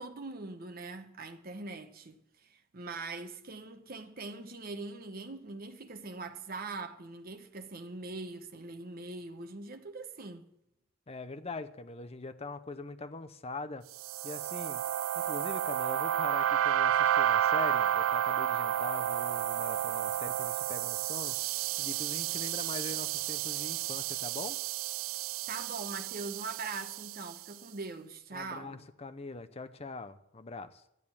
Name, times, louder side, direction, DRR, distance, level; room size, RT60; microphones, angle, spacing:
voice 1, 0.0-10.5 25.5-28.8, right 3 dB, 45° right, 1.0 m, -42 dB
voice 2, 11.1-13.9 14.2-14.8 15.1-21.4 21.8-24.6 28.3-30.8, left 3 dB, 30° left, 0.7 m, -42 dB
sound 1, 14.0-27.3, right 11 dB, 70° right, 0.3 m, -31 dB
sound 2, 17.5-24.6, right 1 dB, 20° right, 5.0 m, -62 dB
11.0 x 8.6 x 7.2 m
head